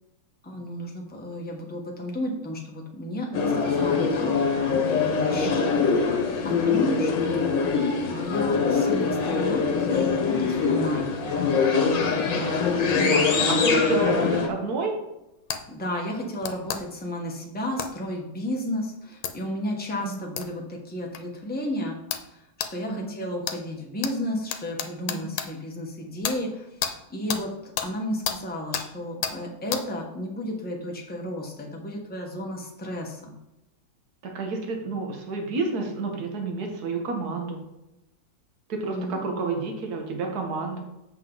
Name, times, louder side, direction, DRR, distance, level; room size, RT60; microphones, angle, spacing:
voice 1, 0.4-7.6 8.0-11.3 14.2-14.5 15.7-22.0 22.3-22.4 22.7-33.3 38.8-39.2, left 1 dB, 5° left, -1 dB, 0.9 m, -33 dB
sound 1, 3.3-14.5, left 5 dB, 65° left, 1.7 m, -23 dB
voice 2, 12.3-14.9 20.0-20.2 22.9-23.2 25.1-25.4 34.2-37.6 38.7-40.8, right 3 dB, 50° right, 2 dB, 1.7 m, -30 dB
sound 2, 15.5-15.6 16.4-16.8 17.8-17.9 19.2-19.3 20.4-20.5 21.2-21.3 22.1-22.3 22.6-22.7 23.4-23.6 24.0-24.1 24.5-25.5 26.2-26.4 26.8-26.9 27.3-27.4 27.8-27.9 28.3-28.4 28.7-28.9 29.2-29.4 29.7-29.8, left 8 dB, 85° left, 1.6 m, -29 dB
7.8 x 6.4 x 4.0 m, 0.91 s
omnidirectional pair, 2.2 m